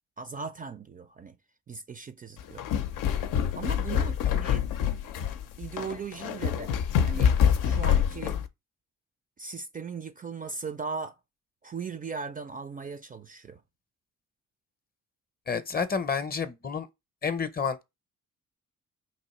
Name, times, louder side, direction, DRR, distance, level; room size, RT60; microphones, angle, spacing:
voice 1, 0.2-1.4 1.7-2.6 3.5-4.7 5.6-6.8 7.0-8.4 9.4-11.2 11.6-13.6, right 5 dB, 25° right, 0.4 m, -38 dB
sound 1, 2.4-8.5, left 8 dB, 85° left, 0.5 m, -26 dB
voice 2, 15.5-16.9 17.2-17.8, left 5 dB, 30° left, 0.6 m, -29 dB
3.0 x 2.7 x 4.1 m
cardioid pair, 75°, 32 cm